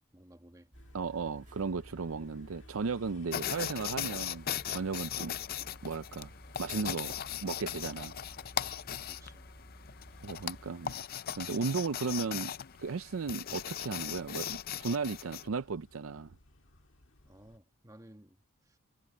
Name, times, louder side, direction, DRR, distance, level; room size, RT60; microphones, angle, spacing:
voice 1, 0.1-0.7 9.0-9.5 17.2-18.8, right 1 dB, 15° right, 1.4 m, -57 dB
sound 1, 0.7-17.6, left 2 dB, 60° left, 1.8 m, -61 dB
sound 2, 0.7-10.7, equal, 35° right, 2.3 m, -54 dB
voice 2, 0.9-5.3 5.8-6.3 6.6-7.1 7.4-8.2 10.2-11.0 11.4-12.5 12.8-16.3, right 4 dB, 70° right, 0.5 m, -35 dB
sound 3, 3.3-15.5, left 9 dB, 45° left, 0.5 m, -39 dB
head